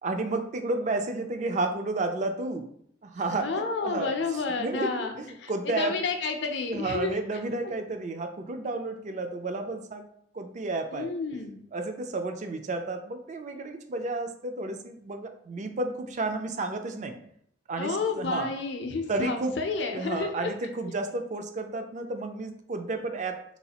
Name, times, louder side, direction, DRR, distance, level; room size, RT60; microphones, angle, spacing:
voice 1, 0.0-2.7 3.0-5.9 6.7-10.0 10.3-11.4 11.7-17.2 17.7-18.5 19.1-19.6 19.9-23.6, right 2 dB, 40° right, 6 dB, 0.4 m, -32 dB
voice 2, 3.4-7.1 7.6-7.7 10.9-11.5 17.8-20.5, left 4 dB, 65° left, 5 dB, 0.5 m, -31 dB
4.0 x 2.3 x 2.8 m, 0.67 s
head